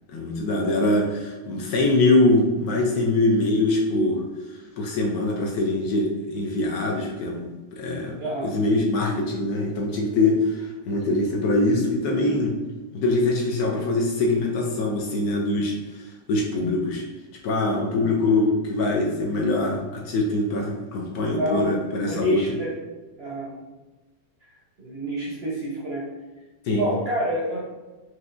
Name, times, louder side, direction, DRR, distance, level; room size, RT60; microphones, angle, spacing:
voice 1, 0.1-4.2 4.8-7.4 7.7-12.5 12.9-17.0 17.4-22.4 26.6-26.9, left 2 dB, 70° left, 0 dB, 1.0 m, -23 dB
voice 2, 8.2-8.6 21.4-21.7 22.0-22.8 23.2-23.6 24.5-26.1 26.7-27.6, right 1 dB, 55° right, -6 dB, 0.7 m, -29 dB
4.7 x 2.7 x 2.5 m, 1.2 s
omnidirectional pair, 1.9 m